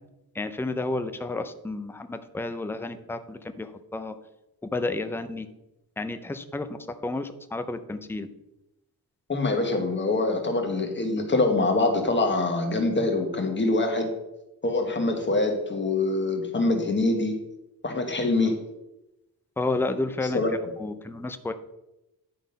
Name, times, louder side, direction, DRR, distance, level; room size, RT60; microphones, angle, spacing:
voice 1, 0.3-4.1 4.7-5.5 6.0-8.3 19.6-20.4 20.8-21.5, left 2 dB, 5° left, 9 dB, 0.5 m, -31 dB
voice 2, 9.3-14.1 14.6-17.3 17.8-18.6 20.3-20.5, left 2 dB, 30° left, 3 dB, 1.4 m, -24 dB
10.5 x 3.8 x 5.2 m, 0.92 s
wide cardioid pair, 135°, 37 cm